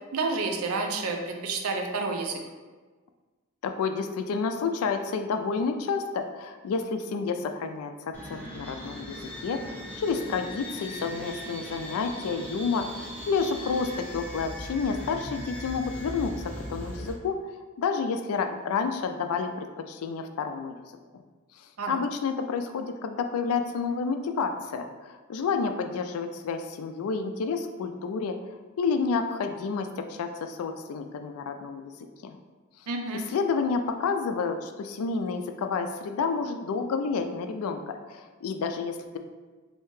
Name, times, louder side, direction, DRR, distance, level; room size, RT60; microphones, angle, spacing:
voice 1, 0.1-2.4 21.8-21.9 32.9-33.2, right 3 dB, 85° right, 3 dB, 0.5 m, -29 dB
voice 2, 3.6-17.4 17.8-20.7 21.9-28.4 28.8-31.9 32.2-32.4 33.1-39.2, left 5 dB, 85° left, 7 dB, 0.3 m, -30 dB
sound 1, 8.1-17.1, equal, 5° left, 0.6 m, -39 dB
3.2 x 2.8 x 3.1 m, 1.3 s
head